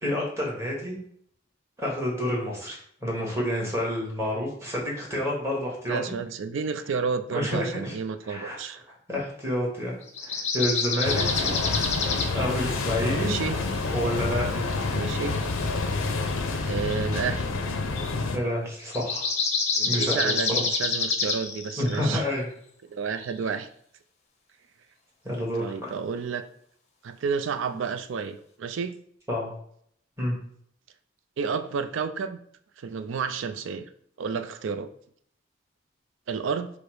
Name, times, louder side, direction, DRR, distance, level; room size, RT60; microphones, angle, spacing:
voice 1, 0.0-1.0 1.8-6.1 7.3-7.9 8.3-8.6 9.1-11.6 12.3-13.3 13.9-14.6 18.3-19.3 19.9-20.3 21.8-22.5 25.2-25.9 29.3-29.5 30.2-30.4, left 1 dB, 15° right, -3 dB, 1.3 m, -29 dB
voice 2, 5.9-8.8 13.1-13.6 14.9-15.4 16.6-17.5 19.7-22.2 22.9-23.7 25.6-26.4 27.0-29.0 31.4-32.4 32.8-33.9 34.2-34.9 36.3-36.7, right 5 dB, 70° right, 9 dB, 0.4 m, -31 dB
sound 1, 10.1-12.3 16.7-17.0 18.0-18.1 18.9-22.1 23.2-23.3, left 4 dB, 35° left, 0.6 m, -27 dB
sound 2, 11.0-18.4, left 3 dB, 90° left, 0.5 m, -28 dB
Toilet flush, 11.1-17.8 18.2-18.3 18.5-18.6 18.8-18.9 21.5-21.6 22.9-23.0, right 1 dB, 35° right, 0.9 m, -44 dB
4.8 x 2.1 x 4.7 m, 0.65 s
head